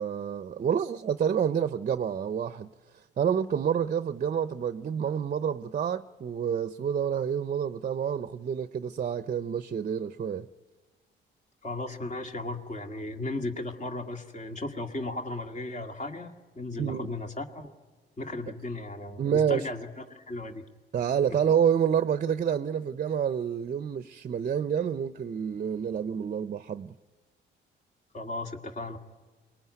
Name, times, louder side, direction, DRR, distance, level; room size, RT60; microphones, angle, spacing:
voice 1, 0.0-2.7 3.2-10.5 16.8-17.1 19.2-19.7 20.9-26.9, right 8 dB, 40° right, 0.7 m, -28 dB
voice 2, 11.6-17.7 18.2-20.6 21.3-21.4 28.1-29.0, left 2 dB, 35° left, 2.0 m, -36 dB
23.5 x 19.5 x 9.6 m
cardioid pair, 90°, 20 cm